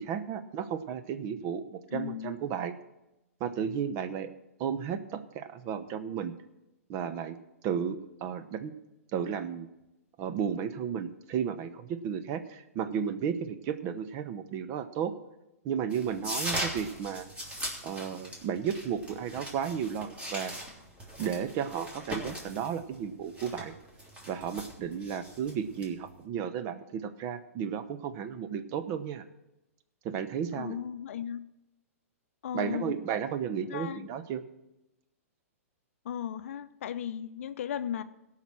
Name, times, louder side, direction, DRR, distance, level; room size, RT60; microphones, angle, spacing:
voice 1, 0.0-2.8 3.4-4.3 4.6-6.3 6.9-7.4 7.6-8.7 9.1-9.7 10.2-15.1 15.6-17.3 17.8-20.5 21.2-23.8 24.3-29.2 30.0-30.8 32.5-34.4, right 8 dB, 40° right, 11 dB, 0.9 m, -33 dB
voice 2, 1.9-2.4 30.6-31.4 32.4-33.0 33.7-34.1 36.0-38.0, left 9 dB, 60° left, 12 dB, 0.6 m, -36 dB
sound 1, 15.9-26.2, equal, 15° right, 3.4 m, -40 dB
17.5 x 5.8 x 6.1 m, 0.94 s
hypercardioid pair, 115°, 8 cm